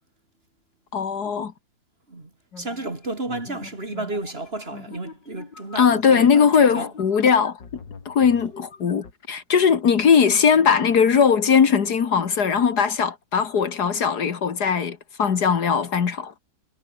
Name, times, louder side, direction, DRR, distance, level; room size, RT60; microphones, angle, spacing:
voice 1, 0.9-1.5 5.8-7.6 8.1-16.3, left 6 dB, 65° left, 2.1 m, -19 dB
sound 1, 2.5-9.1, left 5 dB, 85° left, 3.2 m, -43 dB
voice 2, 2.6-6.9, right 2 dB, 35° right, 3.5 m, -32 dB
omnidirectional pair, 1.9 m